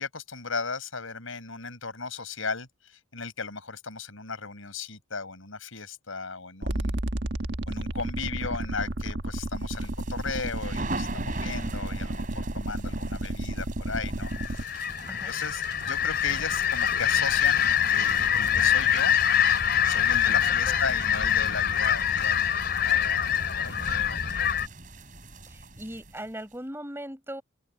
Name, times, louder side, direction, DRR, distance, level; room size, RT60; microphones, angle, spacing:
voice 1, 0.0-7.0 7.7-14.7 15.3-19.2 19.8-22.6 22.8-24.5, left 4 dB, 75° left, 5.3 m, -36 dB
sound 1, 6.6-14.6, right 1 dB, 55° right, 1.6 m, -32 dB
sound 2, 9.6-26.5, right 2 dB, 40° right, 3.9 m, -42 dB
sound 3, 14.3-24.7, left 9 dB, 50° left, 4.3 m, -25 dB
voice 2, 20.3-20.8 23.8-24.0 25.5-27.4, right 1 dB, 10° right, 6.9 m, -40 dB
open air
head